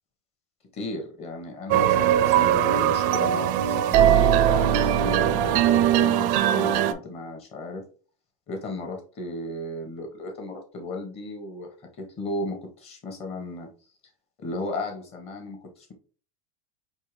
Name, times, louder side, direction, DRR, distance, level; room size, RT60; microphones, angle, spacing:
voice 1, 0.7-4.7 5.0-7.8 8.5-11.7 12.0-13.7 14.4-15.9, left 2 dB, 35° left, 2 dB, 1.5 m, -35 dB
sound 1, 1.7-6.9, right 10 dB, 50° right, 0.4 m, -20 dB
4.5 x 3.1 x 3.4 m, 0.39 s
supercardioid pair, 135°, 18 cm